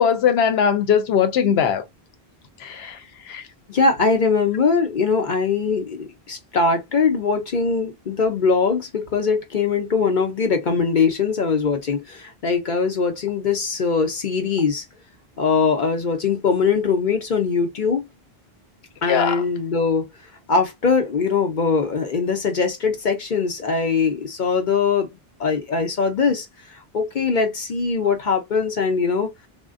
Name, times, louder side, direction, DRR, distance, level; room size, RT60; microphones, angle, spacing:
voice 1, 0.0-1.8 2.6-3.0 3.3-3.4 19.1-19.4, left 8 dB, 85° left, 0.9 m, -20 dB
voice 2, 3.7-14.8 15.4-18.0 19.0-20.1 20.5-25.1 25.4-29.3, left 5 dB, 55° left, 0.8 m, -21 dB
3.6 x 2.1 x 2.4 m
omnidirectional pair, 1.0 m